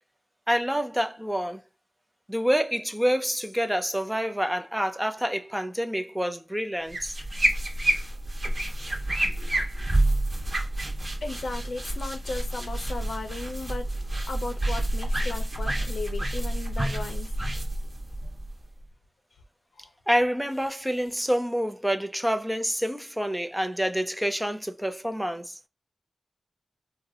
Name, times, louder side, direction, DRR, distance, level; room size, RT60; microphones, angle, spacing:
voice 1, 0.5-1.6 2.3-7.2 20.1-25.6, equal, 5° right, 0.4 m, -27 dB
sound 1, 6.9-18.8, right 1 dB, 35° right, 1.0 m, -28 dB
voice 2, 11.2-13.9 14.3-17.3, left 3 dB, 80° left, 0.6 m, -36 dB
3.9 x 2.0 x 2.7 m
wide cardioid pair, 115°, 0 cm